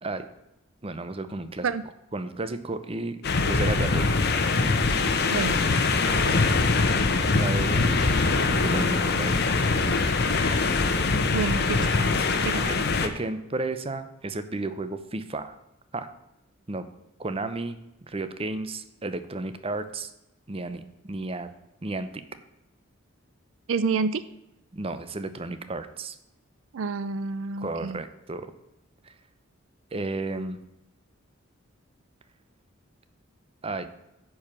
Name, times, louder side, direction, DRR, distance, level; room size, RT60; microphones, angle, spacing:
voice 1, 0.8-1.7 2.1-3.2 3.5-4.1 4.7-5.3 5.5-6.5 7.2-8.2 8.5-9.5 12.0-12.1 12.6-12.8 13.0-15.5 15.9-16.1 16.7-16.8 17.2-17.8 18.0-20.1 20.5-21.5 21.8-22.1 24.7-26.2 27.6-28.5 29.9-30.6 33.6-33.9, right 2 dB, 30° right, 10 dB, 0.7 m, -33 dB
sound 1, 3.2-13.1, left 3 dB, 50° left, 0.9 m, -23 dB
voice 2, 11.3-11.9 12.4-12.7 23.7-24.2 26.7-28.0, right 4 dB, 75° right, 14 dB, 0.4 m, -28 dB
9.9 x 4.8 x 7.2 m, 0.90 s
head